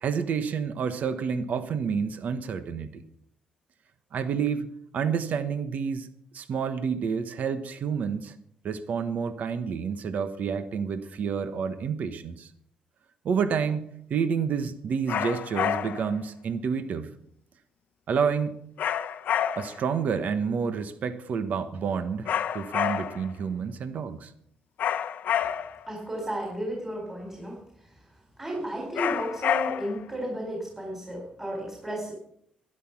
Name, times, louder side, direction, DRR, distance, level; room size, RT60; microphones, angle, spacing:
voice 1, 0.0-3.0 4.1-4.7 4.9-6.1 6.3-8.3 8.6-12.5 13.2-17.1 18.1-18.6 19.5-24.3, right 6 dB, 60° right, 11 dB, 1.1 m, -29 dB
sound 1, 15.1-16.1 18.8-19.9 22.3-23.3 24.8-25.9 29.0-30.0, left 9 dB, 70° left, 0.7 m, -28 dB
voice 2, 25.9-27.9 28.4-32.1, right 1 dB, 15° right, -1 dB, 4.2 m, -33 dB
12.5 x 11.0 x 6.0 m, 0.69 s
cardioid pair, 90°, 3 cm